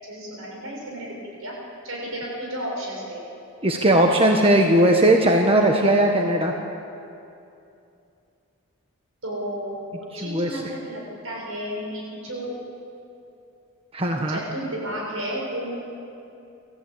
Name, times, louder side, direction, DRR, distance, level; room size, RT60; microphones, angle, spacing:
voice 1, 0.0-1.1 1.4-1.5 1.8-3.2 9.2-12.5 14.3-15.8, equal, 70° right, -2 dB, 7.3 m, -32 dB
voice 2, 3.6-6.5 10.1-10.7 13.9-14.4, right 1 dB, 25° right, 2 dB, 1.4 m, -18 dB
29.5 x 14.5 x 8.7 m, 2.7 s
head